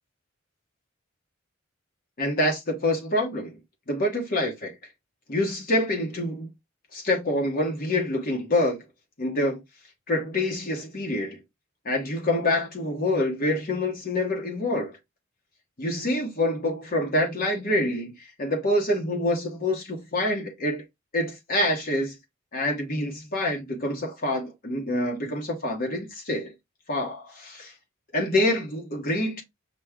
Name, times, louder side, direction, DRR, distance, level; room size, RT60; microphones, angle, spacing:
voice 1, 2.2-3.6 3.9-4.7 5.3-6.5 6.9-8.8 9.2-9.6 10.1-11.4 11.8-15.0 15.8-20.8 21.1-22.1 22.5-26.5 26.9-27.7 28.1-29.4, left 1 dB, 45° left, 1.0 m, -26 dB
5.9 x 2.2 x 3.5 m
head